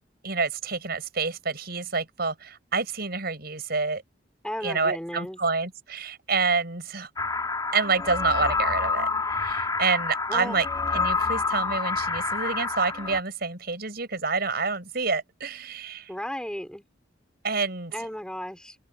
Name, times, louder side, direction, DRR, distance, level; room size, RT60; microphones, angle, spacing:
voice 1, 0.2-4.0 4.6-7.1 7.7-9.1 9.4-10.6 10.9-16.1 17.4-17.9, right 4 dB, 55° right, 6.8 m, -28 dB
voice 2, 4.4-5.4 10.3-10.6 16.1-16.8 17.9-18.8, equal, 5° left, 3.7 m, -34 dB
sound 1, 7.2-13.2, left 4 dB, 20° left, 3.3 m, -28 dB
open air
head